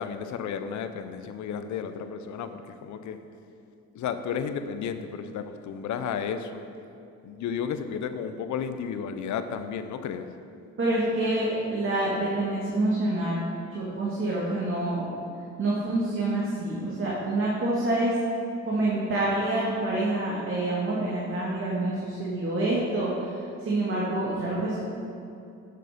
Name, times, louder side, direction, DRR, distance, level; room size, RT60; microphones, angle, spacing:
voice 1, 0.0-3.2 3.9-6.7 7.2-10.3, left 7 dB, 70° left, 9 dB, 0.7 m, -33 dB
voice 2, 10.8-13.4 13.7-15.1 15.6-18.1 18.6-24.8, right 2 dB, 45° right, -6 dB, 2.0 m, -27 dB
10.0 x 6.7 x 5.1 m, 2.7 s
cardioid pair, 90°, 30 cm